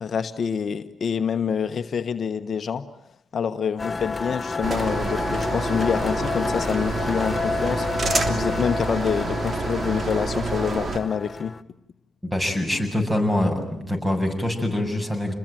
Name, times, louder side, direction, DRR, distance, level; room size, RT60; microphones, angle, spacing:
voice 1, 0.0-2.9 3.3-11.5, left 7 dB, 60° left, 9 dB, 1.2 m, -26 dB
sound 1, 3.8-11.6, left 4 dB, 25° left, 1.4 m, -30 dB
sound 2, 4.6-11.0, right 3 dB, 45° right, 3.2 m, -28 dB
voice 2, 12.2-15.3, left 1 dB, 10° right, 6 dB, 7.6 m, -24 dB
28.5 x 21.0 x 9.2 m, 0.70 s
supercardioid pair, 60°, 0 cm